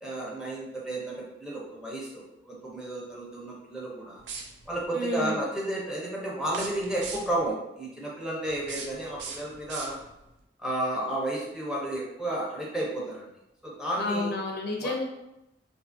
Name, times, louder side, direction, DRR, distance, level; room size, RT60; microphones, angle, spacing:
voice 1, 0.0-4.2 4.7-10.0 10.6-13.3 13.6-14.3 14.8-14.9, right 1 dB, 5° right, -5 dB, 0.5 m, -32 dB
sound 1, 4.2-4.8 6.4-7.5 8.5-10.3, right 5 dB, 75° right, 0.4 m, -41 dB
voice 2, 4.9-5.4 14.0-15.0, left 2 dB, 60° left, 0 dB, 0.5 m, -30 dB
2.6 x 2.4 x 2.5 m, 0.88 s
head